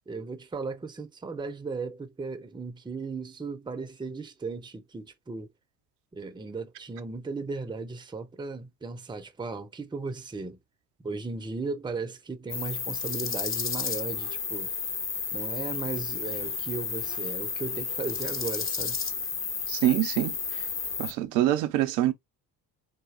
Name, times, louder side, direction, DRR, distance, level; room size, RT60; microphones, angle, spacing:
voice 1, 0.1-5.5 6.1-10.6 11.0-14.7 15.3-19.0, right 4 dB, 10° right, 0.6 m, -36 dB
sound 1, 12.5-21.1, left 6 dB, 25° left, 0.8 m, -32 dB
voice 2, 19.7-20.3 21.0-22.1, right 14 dB, 75° right, 0.7 m, -25 dB
4.3 x 2.6 x 2.4 m
hypercardioid pair, 55°, 49 cm